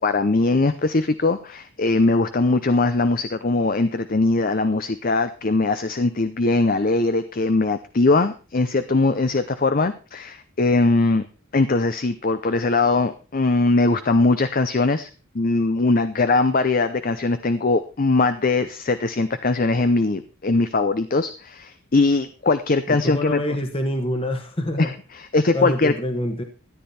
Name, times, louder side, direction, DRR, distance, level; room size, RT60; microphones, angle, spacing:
voice 1, 0.0-11.3 11.5-15.1 15.3-23.4 24.8-25.9, left 3 dB, 40° left, 11 dB, 0.6 m, -21 dB
voice 2, 22.9-24.9 25.5-26.4, left 1 dB, 25° left, 5 dB, 1.3 m, -26 dB
13.5 x 9.9 x 4.3 m, 0.34 s
head